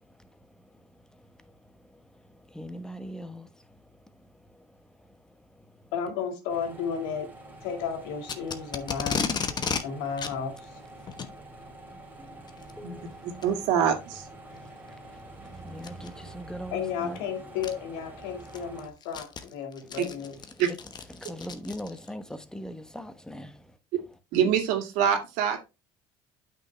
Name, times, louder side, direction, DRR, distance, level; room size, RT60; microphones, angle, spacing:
voice 1, 2.6-3.4 12.8-13.0 15.6-17.2 21.3-23.5, equal, 5° left, 1.1 m, -39 dB
voice 2, 5.9-7.3 7.6-9.2 9.8-10.7 16.7-20.4, left 7 dB, 90° left, 2.0 m, -33 dB
sound 1, 6.5-18.9, right 2 dB, 15° right, 2.5 m, -46 dB
Packing tape duct tape, 8.2-9.8 10.2-10.3 11.1-11.3 12.5-12.7 13.4-13.5 14.1-14.2 15.8-16.1 17.2-17.3 17.6-17.7 18.2-22.1, left 6 dB, 35° left, 1.1 m, -33 dB
voice 3, 13.4-14.3 20.0-20.1 20.6-20.7 24.3-25.6, right 8 dB, 75° right, 2.1 m, -25 dB
8.9 x 5.9 x 3.3 m
supercardioid pair, 95°, 13 cm